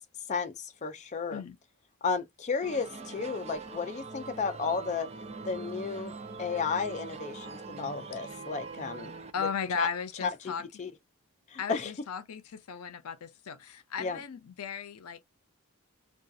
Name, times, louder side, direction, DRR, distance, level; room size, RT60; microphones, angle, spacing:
voice 1, 0.3-1.4 2.0-5.1 5.5-6.1 6.4-9.2 9.8-9.9 10.2-10.3 10.8-10.9 11.5-11.9 14.0-14.2, left 5 dB, 35° left, 0.4 m, -33 dB
sound 1, 2.6-9.3, right 4 dB, 30° right, 0.4 m, -43 dB
voice 2, 9.3-10.7 11.6-15.2, left 6 dB, 85° left, 0.5 m, -36 dB
2.4 x 2.3 x 2.6 m
head